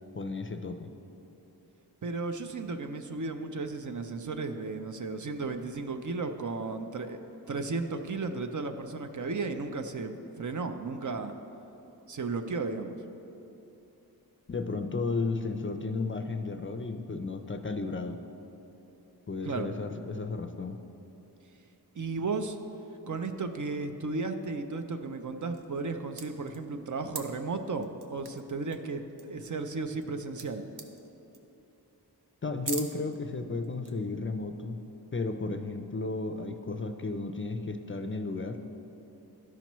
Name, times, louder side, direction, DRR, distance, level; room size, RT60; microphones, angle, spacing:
voice 1, 0.2-0.9 14.5-18.2 19.3-20.8 32.4-34.8 35.1-38.6, left 3 dB, 30° left, 6 dB, 0.4 m, -33 dB
voice 2, 2.0-7.2 7.5-11.3 12.1-12.9 19.4-19.7 21.9-22.6 23.1-30.7, right 3 dB, 50° right, 7 dB, 0.5 m, -34 dB
sound 1, 25.5-25.9 26.2-27.2 27.8-28.4 28.7-28.8 29.1-30.1 30.4-30.5 30.7-31.1 31.3-31.6 32.0-32.1 32.6-33.2 33.6-33.9, right 5 dB, 90° right, 0.7 m, -41 dB
13.5 x 5.8 x 3.0 m, 3.0 s
wide cardioid pair, 80°, 39 cm